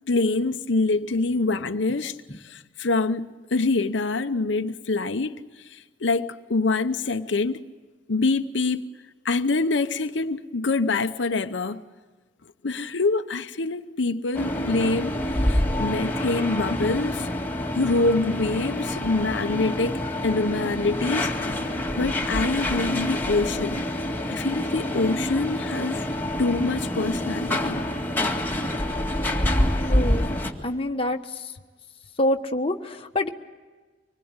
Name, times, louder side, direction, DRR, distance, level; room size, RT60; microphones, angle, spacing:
voice 1, 0.1-7.6 8.1-8.8 9.2-11.8 12.6-17.3 17.8-23.8 24.3-26.1 26.4-27.8, left 3 dB, 80° left, 0.8 m, -25 dB
sound 1, 14.3-30.5, left 1 dB, 10° left, 2.0 m, -27 dB
voice 2, 29.9-30.3 30.6-31.5 32.2-33.3, left 1 dB, 30° left, 1.3 m, -26 dB
25.0 x 20.5 x 8.8 m
head